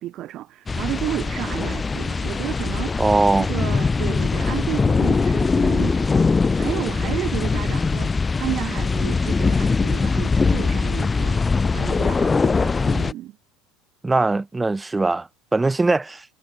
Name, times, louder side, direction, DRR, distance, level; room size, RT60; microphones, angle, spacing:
voice 1, 0.0-3.0 3.4-13.4, right 14 dB, 55° right, 6.6 m, -32 dB
sound 1, 0.7-13.1, left 4 dB, 20° left, 5.3 m, -21 dB
voice 2, 3.0-3.5 14.0-16.3, right 3 dB, 15° right, 3.5 m, -21 dB
hypercardioid pair, 75°, 0 cm